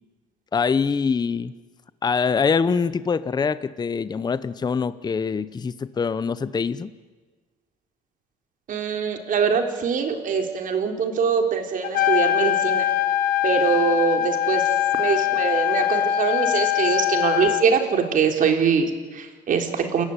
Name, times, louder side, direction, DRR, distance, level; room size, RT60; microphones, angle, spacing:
voice 1, 0.5-1.5 2.0-6.9, left 5 dB, 25° left, 15 dB, 0.7 m, -24 dB
voice 2, 8.7-12.9 13.4-14.6 15.0-20.0, right 6 dB, 50° right, 4 dB, 3.8 m, -23 dB
Trumpet, 11.8-17.6, left 12 dB, 60° left, 1.3 m, -22 dB
28.5 x 15.0 x 9.9 m, 1.4 s
cardioid pair, 110°, 17 cm